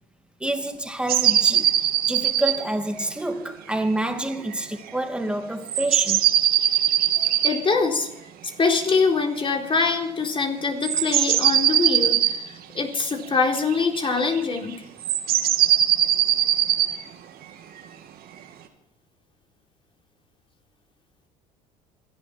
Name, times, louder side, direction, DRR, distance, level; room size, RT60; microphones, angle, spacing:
voice 1, 0.4-6.3, right 1 dB, 5° right, 2.5 m, -28 dB
sound 1, 1.1-2.6 3.0-3.1 4.5-4.6 5.7-7.6 10.8-12.4 13.5-14.6 15.0-16.9, right 11 dB, 55° right, 2.5 m, -20 dB
voice 2, 7.4-8.1 8.6-12.4 12.7-14.8, left 4 dB, 30° left, 4.0 m, -23 dB
27.5 x 11.5 x 4.5 m
hypercardioid pair, 65°, 18 cm